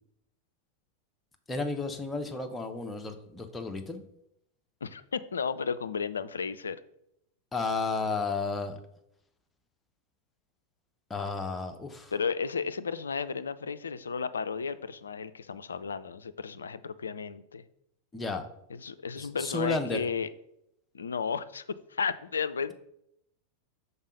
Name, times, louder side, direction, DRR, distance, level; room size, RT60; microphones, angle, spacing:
voice 1, 1.5-4.0 7.5-8.8 11.1-12.1 18.1-18.5 19.2-20.1, left 3 dB, 15° left, 6 dB, 0.7 m, -32 dB
voice 2, 4.8-6.8 12.1-17.6 18.7-20.3 20.9-22.7, left 5 dB, 70° left, 14 dB, 0.3 m, -33 dB
5.5 x 4.1 x 5.1 m, 0.77 s
figure-of-eight pair, 90°, 0 cm